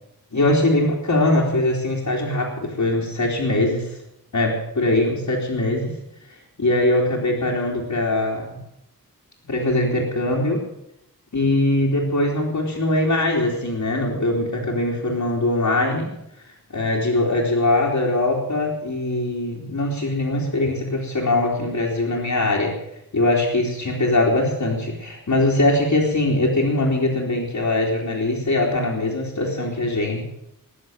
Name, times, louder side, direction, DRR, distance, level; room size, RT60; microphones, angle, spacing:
voice 1, 0.3-4.0 4.3-5.9 6.6-8.6 9.4-10.6 11.3-16.1 16.7-22.8 23.1-30.2, left 2 dB, 55° left, -4 dB, 3.3 m, -21 dB
20.5 x 7.4 x 7.9 m, 0.79 s
wide cardioid pair, 105°, 36 cm